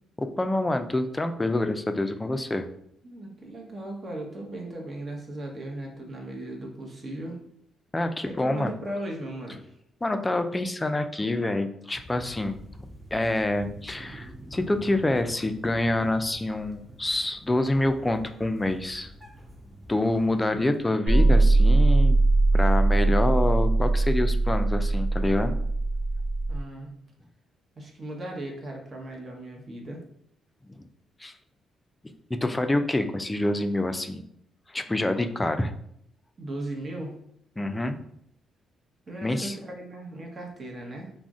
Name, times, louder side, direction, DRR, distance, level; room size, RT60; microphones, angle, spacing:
voice 1, 0.2-2.7 7.9-8.7 10.0-12.6 13.1-19.1 19.9-22.2 22.5-25.6 30.7-30.8 31.2-31.3 32.4-34.2 34.7-35.7 37.6-38.0 39.2-39.6, left 1 dB, 20° left, 8 dB, 0.3 m, -26 dB
voice 2, 3.0-7.4 8.2-9.8 26.5-26.9 27.8-30.0 36.4-37.2 39.1-41.1, right 1 dB, 40° right, 0 dB, 0.8 m, -37 dB
sound 1, 11.9-20.8, equal, 10° right, 0.7 m, -46 dB
sound 2, 21.1-26.6, right 2 dB, 80° right, 0.7 m, -21 dB
2.4 x 2.0 x 3.5 m, 0.71 s
supercardioid pair, 60°, 0 cm